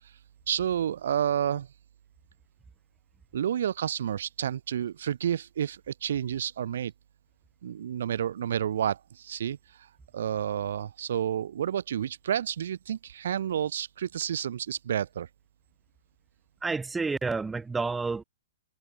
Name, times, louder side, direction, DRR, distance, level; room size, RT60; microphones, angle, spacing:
voice 1, 0.5-1.7 3.3-6.9 7.6-9.6 10.1-15.3, right 9 dB, 65° right, 7.0 m, -30 dB
voice 2, 16.6-18.2, right 4 dB, 10° right, 6.0 m, -29 dB
hypercardioid pair, 120°, 0 cm